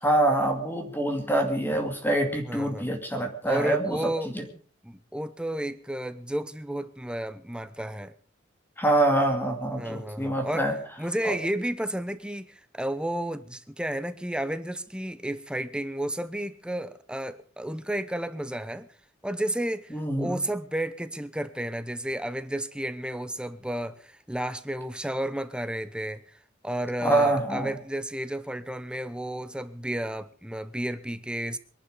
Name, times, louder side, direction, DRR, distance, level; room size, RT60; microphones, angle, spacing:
voice 1, 0.0-4.4 8.8-10.8 11.2-11.4 19.9-20.4 27.0-27.8, right 1 dB, 10° left, 2.5 m, -25 dB
voice 2, 2.4-2.9 3.5-4.3 4.8-8.1 9.8-10.7 11.0-18.9 19.2-26.2 26.6-31.6, right 1 dB, 5° right, 0.8 m, -32 dB
23.0 x 11.5 x 5.1 m
head